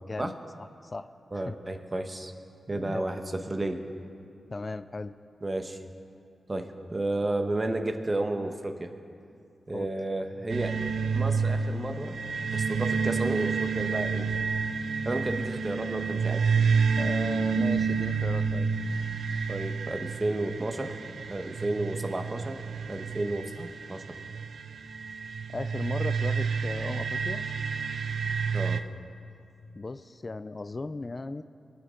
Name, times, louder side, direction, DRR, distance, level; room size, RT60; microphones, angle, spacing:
voice 1, 0.1-1.1 1.3-1.6 2.7-3.1 4.5-5.1 9.7-9.9 17.0-18.7 25.5-27.4 29.7-31.4, left 3 dB, 40° left, 12 dB, 0.4 m, -36 dB
voice 2, 1.3-2.3 2.7-3.8 5.4-5.8 6.5-8.9 9.7-10.7 11.1-12.2 12.5-14.3 15.0-16.4 19.5-20.9 21.3-22.6 22.9-24.0 28.5-28.8, right 2 dB, 30° right, 6 dB, 1.1 m, -32 dB
sound 1, 10.5-28.8, right 5 dB, 75° right, 0.5 m, -29 dB
22.0 x 9.6 x 3.8 m, 2.4 s
cardioid pair, 70°, 0 cm